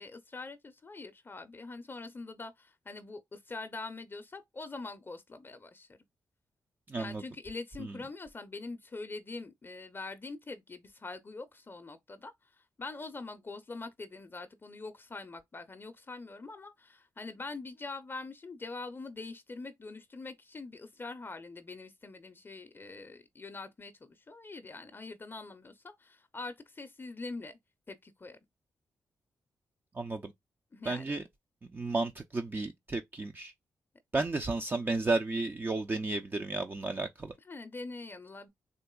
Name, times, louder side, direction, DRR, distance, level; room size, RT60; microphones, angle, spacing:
voice 1, 0.0-6.0 6.9-27.6 27.9-28.4 30.7-31.1 37.5-38.5, left 3 dB, 30° left, 0.5 m, -44 dB
voice 2, 6.9-7.2 7.8-8.0 29.9-30.3 30.9-31.2 31.7-33.5 34.1-37.3, right 3 dB, 30° right, 0.5 m, -33 dB
3.8 x 2.4 x 2.2 m
cardioid pair, 65°, 7 cm